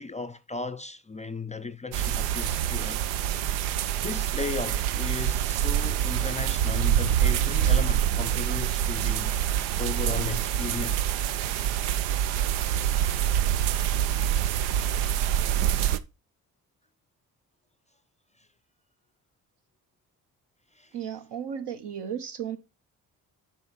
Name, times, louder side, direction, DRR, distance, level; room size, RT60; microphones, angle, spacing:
voice 1, 0.0-3.0 4.0-9.4 9.8-11.1 20.8-20.9, left 4 dB, 15° left, 0.5 m, -35 dB
sound 1, 1.9-16.0, right 10 dB, 80° right, 0.6 m, -26 dB
voice 2, 20.9-22.6, right 8 dB, 60° right, 1.2 m, -34 dB
6.6 x 3.9 x 5.7 m
hypercardioid pair, 45°, 45 cm